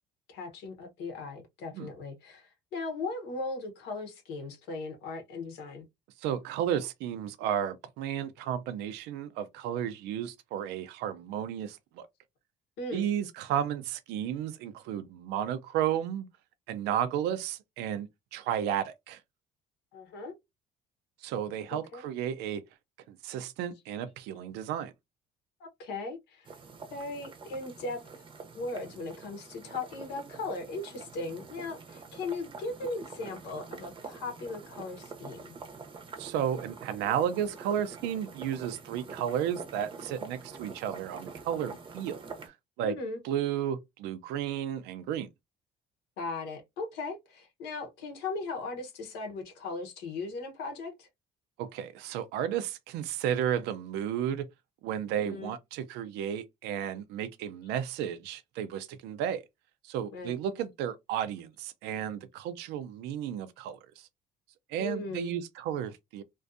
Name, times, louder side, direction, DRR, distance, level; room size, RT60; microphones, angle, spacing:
voice 1, 0.3-5.9 12.8-13.1 19.9-20.3 21.9-22.1 25.6-26.5 26.9-28.3 28.5-35.6 42.8-43.2 46.2-51.1 55.2-55.5 60.1-60.3 64.8-65.3, left 3 dB, 85° left, 0.8 m, -38 dB
voice 2, 6.2-12.1 12.9-16.3 16.7-19.2 21.2-22.6 23.1-24.9 36.2-43.0 43.2-45.3 51.6-54.5 54.8-59.4 59.8-64.1 64.7-66.2, right 9 dB, 90° right, 0.4 m, -33 dB
sound 1, 26.5-42.5, right 4 dB, 30° right, 0.6 m, -46 dB
2.5 x 2.2 x 2.5 m
cardioid pair, 110°, 17 cm